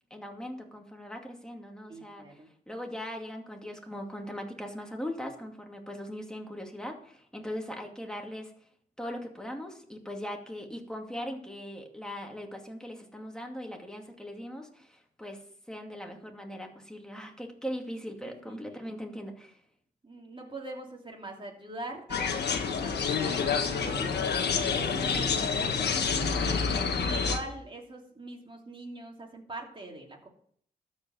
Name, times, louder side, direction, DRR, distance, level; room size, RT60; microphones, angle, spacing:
voice 1, 0.1-8.5 9.0-19.6, equal, 5° left, 2 dB, 2.4 m, -40 dB
voice 2, 1.9-2.5 18.2-19.0 20.0-25.9 26.3-30.3, right 2 dB, 30° right, 0 dB, 3.0 m, -43 dB
sound 1, 22.1-27.4, left 5 dB, 85° left, 1.4 m, -28 dB
13.0 x 5.1 x 7.8 m, 0.64 s
cardioid pair, 65°, 17 cm